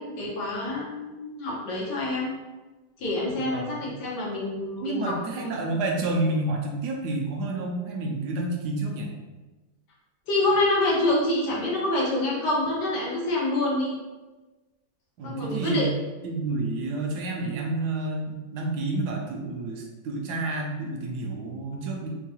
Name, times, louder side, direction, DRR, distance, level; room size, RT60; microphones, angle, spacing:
voice 1, 0.0-2.3 3.0-5.5 10.3-13.9 15.2-15.9, left 2 dB, 90° left, -5 dB, 1.6 m, -27 dB
voice 2, 3.3-3.9 4.8-9.1 15.2-15.8 16.2-22.1, right 2 dB, 80° right, 1 dB, 1.2 m, -29 dB
4.5 x 2.3 x 2.9 m, 1.2 s
omnidirectional pair, 1.8 m